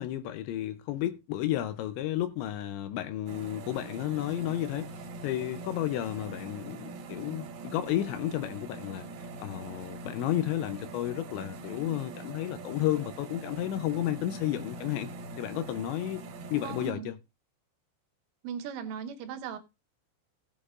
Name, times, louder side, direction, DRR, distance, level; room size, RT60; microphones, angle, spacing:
voice 1, 0.0-4.9 5.2-15.1 15.4-16.2 16.5-17.1, left 13 dB, 80° left, 2.7 m, -32 dB
sound 1, 3.3-16.9, right 2 dB, 60° right, 3.1 m, -43 dB
voice 2, 16.6-17.1 18.4-19.6, right 7 dB, 80° right, 3.6 m, -38 dB
17.5 x 8.7 x 2.4 m
omnidirectional pair, 5.7 m